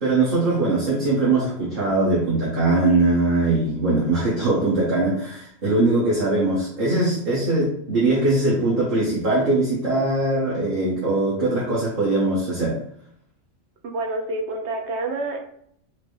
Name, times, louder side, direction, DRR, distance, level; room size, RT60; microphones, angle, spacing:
voice 1, 0.0-12.8, right 2 dB, 45° right, -8 dB, 1.2 m, -21 dB
voice 2, 13.8-15.4, right 2 dB, 65° right, 2 dB, 0.9 m, -28 dB
4.5 x 2.2 x 3.2 m, 0.67 s
omnidirectional pair, 1.3 m